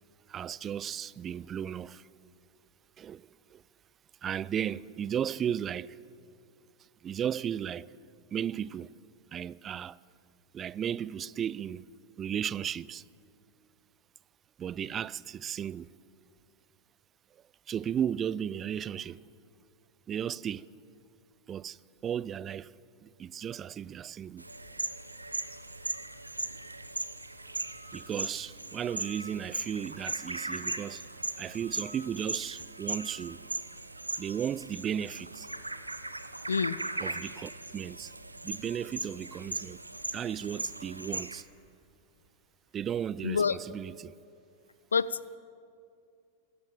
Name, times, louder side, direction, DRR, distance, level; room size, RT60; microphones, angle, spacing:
voice 1, 0.3-2.1 3.0-3.6 4.2-6.0 7.0-7.9 8.3-8.9 9.3-10.0 10.5-11.8 12.2-13.0 14.6-15.9 17.7-19.2 20.1-20.7 21.5-21.8 22.0-22.7 23.0-24.5 27.9-31.1 31.4-33.4 34.2-35.5 37.0-38.1 38.4-39.8 40.1-41.5 42.7-44.1, right 9 dB, 25° right, 0.4 m, -35 dB
sound 1, 24.4-41.4, right 2 dB, 85° right, 1.0 m, -38 dB
voice 2, 36.5-36.8 43.2-43.6 44.9-45.4, left 5 dB, 75° left, 0.4 m, -28 dB
21.0 x 17.5 x 8.9 m
figure-of-eight pair, 90°, 0 cm